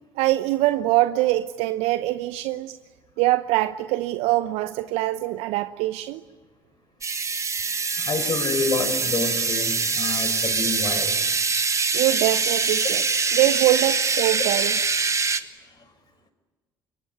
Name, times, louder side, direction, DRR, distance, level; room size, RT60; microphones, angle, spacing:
voice 1, 0.2-2.8 3.2-6.2 11.9-13.1 13.3-14.8, right 16 dB, 65° right, 12 dB, 0.8 m, -23 dB
sound 1, 7.0-15.4, right 4 dB, 30° right, 1.9 m, -24 dB
voice 2, 8.0-11.2, left 4 dB, 40° left, 9 dB, 5.3 m, -28 dB
26.0 x 23.0 x 9.3 m, 1.3 s
hypercardioid pair, 55°, 11 cm